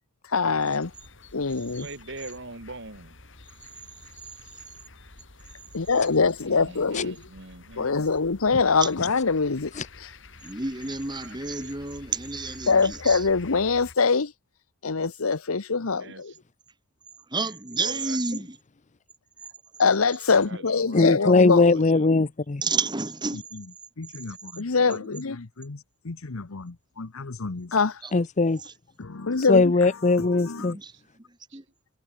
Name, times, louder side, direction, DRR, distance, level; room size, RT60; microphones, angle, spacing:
voice 1, 0.3-0.9 1.3-1.9 5.7-7.1 7.8-9.7 10.0-10.1 12.7-14.3 14.8-16.3 19.8-21.9 24.0-25.8 26.0-28.0 29.0-29.7 30.1-30.7, left 4 dB, 90° left, 1.0 m, -24 dB
sound 1, 0.8-14.0, left 3 dB, 60° left, 4.4 m, -49 dB
voice 2, 1.8-3.2 6.4-8.0 11.2-12.0 16.0-16.4 17.3-18.2 20.3-22.1 24.7-25.2 30.9-31.0 31.5-31.6, right 2 dB, 60° right, 6.6 m, -44 dB
voice 3, 10.4-13.3 15.9-16.1 17.3-18.6 22.6-23.5 28.0-28.1 28.6-28.7 30.6-31.6, right 3 dB, 20° right, 2.1 m, -31 dB
voice 4, 20.9-22.6 28.1-28.6 29.5-30.8, left 3 dB, 35° left, 0.6 m, -20 dB
head